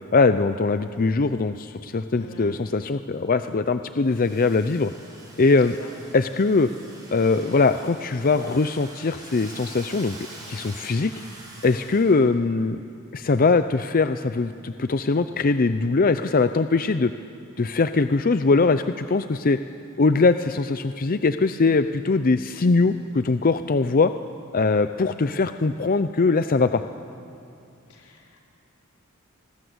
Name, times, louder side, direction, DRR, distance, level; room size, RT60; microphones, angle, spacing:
voice 1, 0.1-4.9 5.4-5.8 6.1-6.7 7.1-10.1 10.5-11.1 11.6-12.8 13.1-17.1 17.6-19.6 20.0-24.1 24.5-26.8, left 3 dB, 40° left, 10 dB, 0.5 m, -21 dB
voice 2, 2.1-2.5 5.8-5.9 27.9-28.4, left 1 dB, 85° left, -1 dB, 4.5 m, -44 dB
Domestic sounds home sounds, 4.0-12.2, right 2 dB, 20° right, 5.6 m, -45 dB
26.5 x 20.5 x 7.9 m, 2.6 s
head